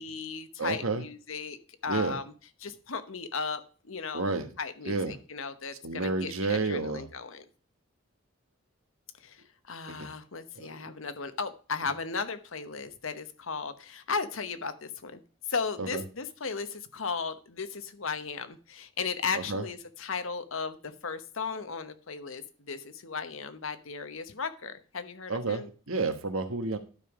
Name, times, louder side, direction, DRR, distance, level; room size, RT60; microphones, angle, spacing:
voice 1, 0.0-2.2 2.6-7.4 9.2-15.2 15.5-25.7, left 5 dB, 75° left, 10 dB, 1.0 m, -36 dB
voice 2, 0.6-1.0 1.9-2.2 4.1-4.5 4.8-5.2 5.8-7.1 9.9-10.1 10.5-10.9 15.8-16.0 19.3-19.7 25.3-26.8, right 3 dB, 85° right, 8 dB, 1.4 m, -31 dB
12.0 x 5.5 x 4.9 m, 0.38 s
head